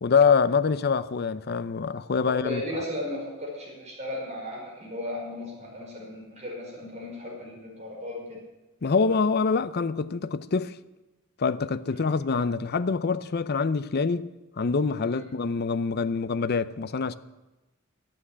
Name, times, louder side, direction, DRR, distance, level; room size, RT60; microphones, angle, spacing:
voice 1, 0.0-2.6 8.8-10.8 11.4-14.3 14.6-17.1, left 5 dB, 50° left, 0.5 m, -25 dB
voice 2, 2.3-8.4 11.9-12.2 15.1-15.3, left 1 dB, 35° right, 5.5 m, -36 dB
12.0 x 8.6 x 9.7 m
head